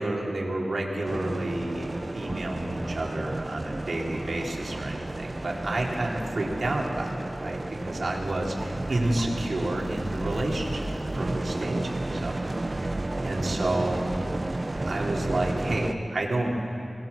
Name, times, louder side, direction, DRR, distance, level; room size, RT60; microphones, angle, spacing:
voice 1, 0.0-7.6 7.8-14.1 14.8-16.8, right 2 dB, 75° right, -2 dB, 4.0 m, -30 dB
sound 1, 1.1-15.9, right 2 dB, 40° right, 1.0 m, -32 dB
25.0 x 20.5 x 7.4 m, 2.7 s
wide cardioid pair, 60°, 0 cm